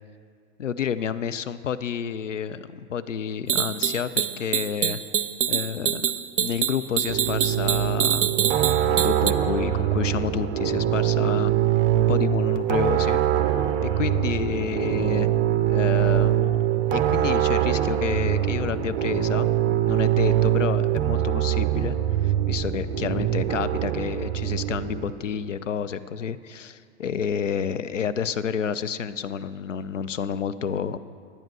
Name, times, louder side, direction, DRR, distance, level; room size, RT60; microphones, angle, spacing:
voice 1, 0.6-5.0 5.5-6.1 6.4-8.4 8.8-11.5 11.9-13.2 13.8-15.3 15.7-16.6 16.9-19.5 19.9-21.9 22.2-31.0, left 7 dB, 85° left, 13 dB, 0.5 m, -29 dB
sound 1, 3.5-9.3, right 9 dB, 75° right, 0.6 m, -25 dB
sound 2, 7.1-25.1, right 11 dB, 30° right, 0.7 m, -23 dB
11.0 x 8.8 x 6.1 m, 2.3 s
figure-of-eight pair, 100°, 36 cm